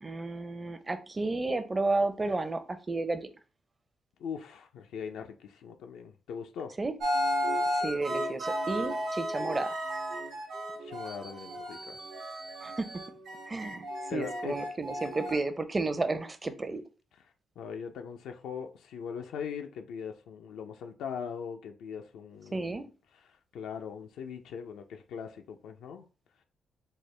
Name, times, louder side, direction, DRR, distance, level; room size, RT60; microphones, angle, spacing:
voice 1, 0.0-3.3 6.8-6.9 7.7-9.8 12.6-12.9 13.5-16.8 22.5-22.9, right 3 dB, 25° right, 0.5 m, -32 dB
voice 2, 4.2-6.7 10.8-12.0 14.1-14.5 17.6-22.8 23.5-26.0, left 7 dB, 90° left, 0.4 m, -40 dB
sound 1, 7.0-15.3, equal, 80° right, 0.9 m, -34 dB
4.3 x 2.1 x 3.2 m
cardioid pair, 85°, 0 cm